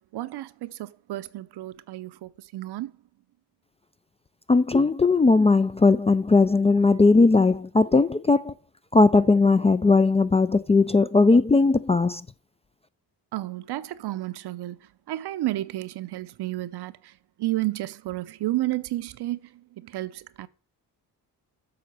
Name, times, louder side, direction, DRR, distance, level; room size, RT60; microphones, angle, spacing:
voice 1, 0.1-2.9 13.3-20.5, right 16 dB, 70° right, 0.7 m, -32 dB
voice 2, 4.5-8.5 8.9-12.2, left 3 dB, 15° left, 0.3 m, -18 dB
7.9 x 3.9 x 6.6 m
supercardioid pair, 60°, 41 cm